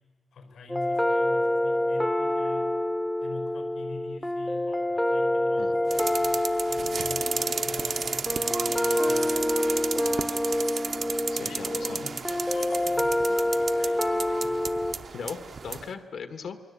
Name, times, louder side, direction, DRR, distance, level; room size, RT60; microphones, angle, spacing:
voice 1, 0.3-2.8 3.2-6.4 6.7-9.4 11.3-14.7, left 4 dB, 90° left, 6 dB, 5.4 m, -45 dB
sound 1, 0.7-14.9, left 1 dB, 5° left, 0.8 m, -27 dB
sound 2, 5.9-15.9, right 5 dB, 45° right, 0.8 m, -33 dB
voice 2, 11.0-12.0 15.1-16.6, left 6 dB, 70° left, 8 dB, 1.6 m, -39 dB
27.5 x 22.0 x 8.6 m, 1.5 s
wide cardioid pair, 170°, 0 cm